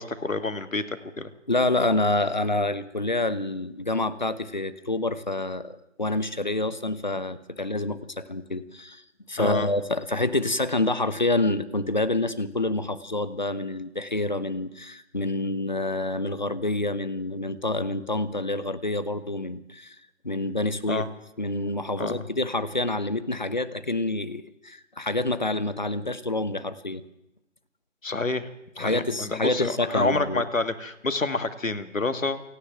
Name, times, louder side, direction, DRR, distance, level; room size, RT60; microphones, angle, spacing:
voice 1, 0.0-1.3 9.4-9.7 20.9-21.1 22.0-22.3 28.0-28.5 28.8-32.4, left 3 dB, 75° left, 9 dB, 2.2 m, -28 dB
voice 2, 1.5-9.0 9.3-20.0 20.2-21.0 21.4-27.0 28.8-30.4, left 2 dB, 35° left, 14 dB, 1.0 m, -27 dB
28.0 x 10.5 x 9.1 m, 0.87 s
figure-of-eight pair, 175°, 39 cm